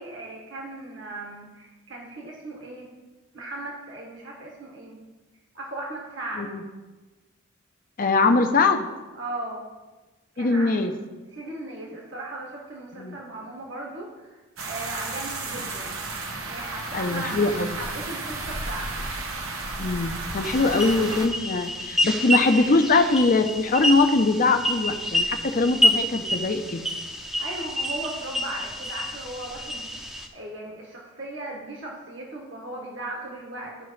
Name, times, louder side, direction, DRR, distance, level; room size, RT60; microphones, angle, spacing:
voice 1, 0.0-2.9 3.3-5.0 5.5-6.5 9.1-9.6 10.3-10.9 11.3-14.4 14.6-16.0 16.5-17.4 17.7-19.0 20.6-20.8 22.1-22.3 27.4-33.8, right 2 dB, 65° right, -2 dB, 1.5 m, -37 dB
voice 2, 8.0-8.9 10.4-10.9 13.0-13.2 16.9-17.8 19.8-26.9, left 3 dB, 45° left, 6 dB, 0.6 m, -22 dB
sound 1, 14.6-21.3, right 2 dB, 80° right, 1.1 m, -33 dB
sound 2, 20.4-30.3, equal, ahead, 0.6 m, -28 dB
13.0 x 5.9 x 3.2 m, 1.2 s
head